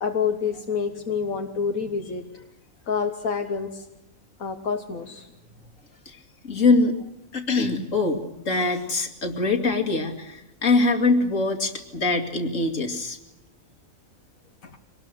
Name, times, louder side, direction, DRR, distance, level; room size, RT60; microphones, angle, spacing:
voice 1, 0.0-2.2 2.9-3.8 4.4-5.3, left 6 dB, 85° left, 4 dB, 1.9 m, -27 dB
voice 2, 6.4-7.0 7.3-13.2, left 3 dB, 70° left, 4 dB, 2.9 m, -23 dB
25.0 x 19.5 x 7.8 m, 0.92 s
omnidirectional pair, 1.4 m